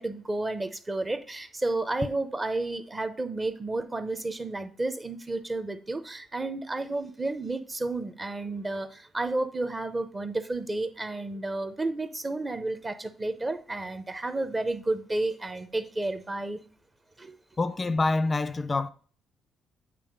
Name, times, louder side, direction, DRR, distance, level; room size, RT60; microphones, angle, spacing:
voice 1, 0.0-16.6 17.2-17.3, right 2 dB, 25° right, 0.7 m, -31 dB
voice 2, 17.6-18.9, left 3 dB, 25° left, 0.4 m, -26 dB
8.4 x 3.1 x 5.2 m
cardioid pair, 90°, 0 cm